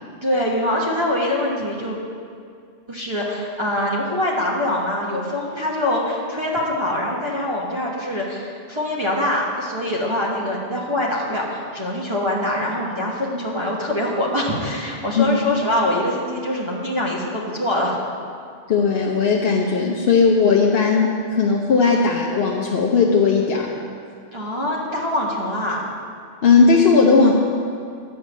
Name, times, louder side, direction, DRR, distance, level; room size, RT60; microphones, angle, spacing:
voice 1, 0.2-2.0 2.9-18.0 24.3-25.9, left 1 dB, 25° right, -4 dB, 1.2 m, -24 dB
voice 2, 18.7-23.7 26.4-27.3, left 5 dB, 60° left, -2 dB, 0.9 m, -17 dB
9.5 x 5.2 x 7.3 m, 2.2 s
omnidirectional pair, 1.3 m